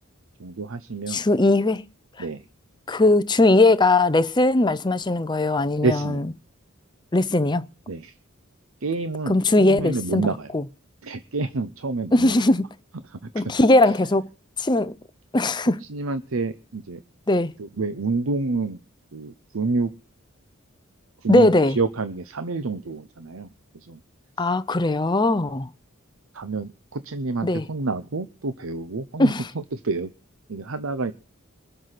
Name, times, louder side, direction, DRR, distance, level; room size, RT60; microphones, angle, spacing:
voice 1, 0.4-1.2 2.2-2.4 5.8-6.2 7.9-8.1 8.8-10.5 11.0-12.4 13.1-13.4 15.8-17.0 17.6-18.8 19.1-19.9 21.2-21.5 21.8-23.5 23.8-24.0 24.4-24.5 26.3-30.1 30.5-31.1, right 3 dB, 75° right, 0.8 m, -28 dB
voice 2, 1.1-1.9 2.9-6.2 7.1-7.7 9.3-10.3 10.5-10.6 12.1-12.7 13.3-14.3 14.6-15.0 15.3-15.8 17.3-17.5 21.3-21.8 24.4-25.7 27.4-27.6 29.2-29.5, left 2 dB, 20° left, 0.6 m, -19 dB
22.5 x 7.9 x 5.9 m
head